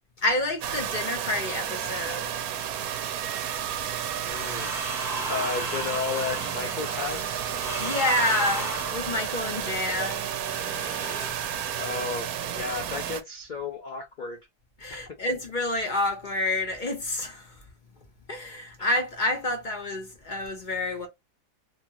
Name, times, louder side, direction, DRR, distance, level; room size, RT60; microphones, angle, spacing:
voice 1, 0.2-2.3 7.8-10.3 14.8-17.4 18.3-21.1, left 2 dB, 40° left, 0.8 m, -28 dB
sound 1, 0.6-13.2, right 9 dB, 70° right, 1.0 m, -32 dB
voice 2, 4.2-4.7 5.3-7.4 11.8-14.4 14.9-15.0, left 4 dB, 75° left, 0.4 m, -33 dB
sound 2, 4.3-11.4 12.4-12.9, right 1 dB, 5° right, 0.6 m, -36 dB
2.9 x 2.4 x 2.8 m
omnidirectional pair, 1.7 m